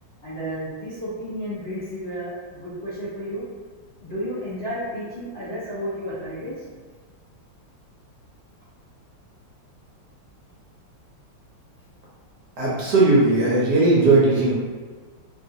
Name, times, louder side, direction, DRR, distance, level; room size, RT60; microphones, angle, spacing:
voice 1, 0.2-3.4 4.0-6.6, equal, 45° left, -12 dB, 0.9 m, -32 dB
voice 2, 12.6-14.5, right 2 dB, 65° right, -6 dB, 1.3 m, -17 dB
3.4 x 2.5 x 2.7 m, 1.4 s
omnidirectional pair, 2.1 m